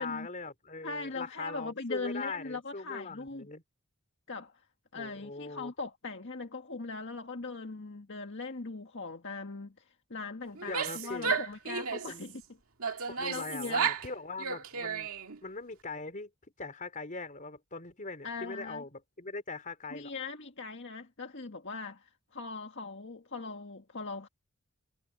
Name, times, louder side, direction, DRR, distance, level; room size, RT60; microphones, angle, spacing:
voice 1, 0.0-3.6 4.9-5.7 10.6-11.4 11.9-12.3 13.1-15.1 15.4-16.3 16.6-20.1, left 3 dB, 40° left, 3.6 m, -41 dB
voice 2, 0.8-3.5 4.3-4.6 4.9-9.7 10.1-12.4 12.9-13.9 18.2-18.8 19.9-24.3, left 3 dB, 60° left, 1.7 m, -40 dB
Female speech woman speaking / Yell, 10.6-12.2 12.8-14.1 14.4-15.4, right 6 dB, 90° right, 2.0 m, -33 dB
head